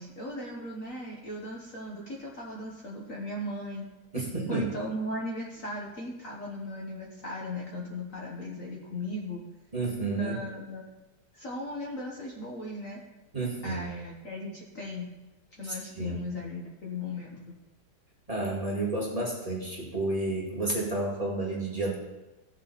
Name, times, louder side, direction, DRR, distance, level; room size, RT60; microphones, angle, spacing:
voice 1, 0.0-3.8 4.1-4.2 4.5-9.4 10.2-10.8 11.3-13.0 13.6-15.1 15.6-17.6, left 1 dB, 45° left, -2 dB, 1.6 m, -37 dB
voice 2, 4.1-4.7 9.7-10.4 13.3-13.9 15.6-16.2 18.3-22.0, right 2 dB, 20° right, -5 dB, 2.2 m, -31 dB
16.5 x 6.6 x 4.2 m, 1.1 s
omnidirectional pair, 2.1 m